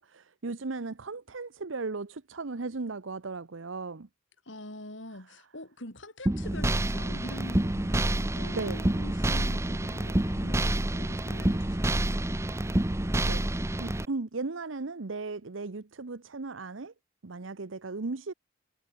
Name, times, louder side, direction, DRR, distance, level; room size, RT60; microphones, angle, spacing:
voice 1, 0.0-4.1 8.5-8.8 13.2-13.4 13.8-16.9 17.2-18.3, right 3 dB, 75° right, 0.9 m, -36 dB
voice 2, 4.4-12.5, left 1 dB, 65° left, 7.9 m, -45 dB
sound 1, 6.3-14.1, right 1 dB, 15° right, 0.7 m, -28 dB
head